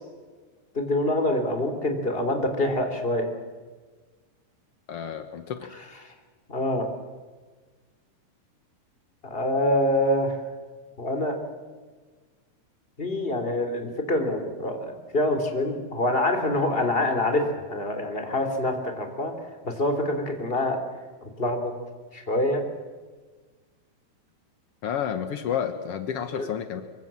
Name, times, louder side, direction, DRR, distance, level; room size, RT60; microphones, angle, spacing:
voice 1, 0.7-3.2 6.5-6.9 9.2-10.4 11.0-11.3 13.0-19.3 19.6-20.8 21.2-21.7 22.1-22.6 26.3-26.5, left 1 dB, 15° left, 5 dB, 2.8 m, -25 dB
voice 2, 4.9-5.7 24.8-26.8, left 8 dB, 85° left, 8 dB, 1.3 m, -30 dB
24.5 x 24.0 x 7.6 m, 1.4 s
omnidirectional pair, 4.6 m